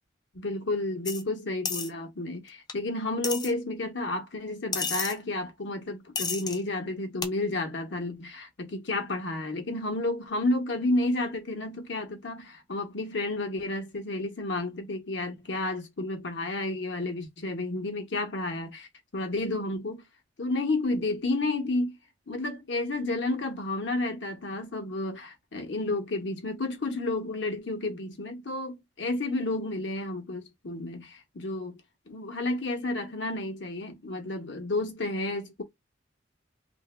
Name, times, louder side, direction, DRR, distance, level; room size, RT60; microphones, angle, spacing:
voice 1, 0.4-20.0 20.4-21.9 22.3-31.8 32.1-35.6, left 2 dB, 70° left, 0.9 m, -31 dB
sound 1, 1.1-1.2 1.7-1.9 2.7-2.8 3.2-3.5 4.7-5.1 6.2-6.6 7.2-7.3, left 5 dB, 20° left, 0.4 m, -31 dB
2.8 x 2.6 x 3.3 m
head